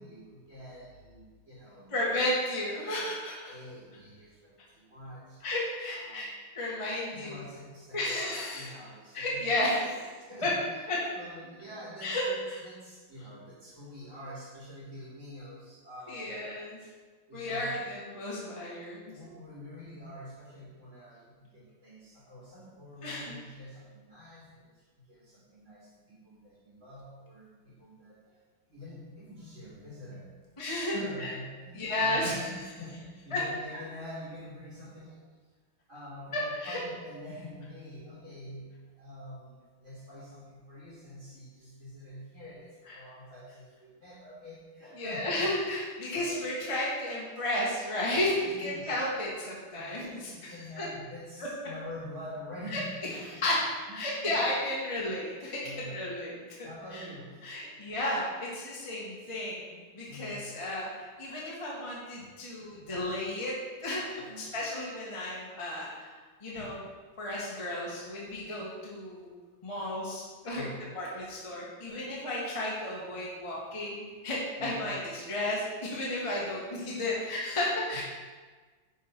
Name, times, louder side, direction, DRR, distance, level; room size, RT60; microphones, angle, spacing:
voice 1, 0.0-1.9 2.8-3.1 3.4-5.4 5.9-6.3 7.1-8.2 8.5-9.4 9.9-10.5 11.1-16.4 16.8-16.9 17.3-17.8 19.0-28.4 28.7-30.3 30.9-35.2 35.9-45.5 46.1-46.5 48.4-48.9 49.7-53.4 53.9-54.3 55.6-56.0 56.6-57.6 59.9-60.4 64.1-64.6 66.5-66.6 69.8-69.9 70.5-70.9 74.6-74.9 77.1-77.3 77.9-78.0, left 1 dB, 35° right, -9 dB, 3.0 m, -46 dB
voice 2, 1.9-3.5 5.4-6.3 6.5-7.4 7.9-8.7 9.1-10.0 10.4-10.5 10.9-11.0 12.0-12.6 16.1-16.8 17.3-19.1 23.0-23.2 30.6-31.3 31.7-32.3 33.3-33.4 36.3-36.8 42.9-43.0 44.9-50.9 52.7-52.8 53.4-53.6 53.9-55.6 55.9-56.4 56.9-57.0 57.4-63.5 63.8-66.1 66.4-66.8 67.2-69.3 69.6-70.7 70.9-78.0, left 1 dB, 20° left, -5 dB, 1.2 m, -33 dB
9.8 x 4.7 x 4.5 m, 1.4 s
omnidirectional pair, 2.4 m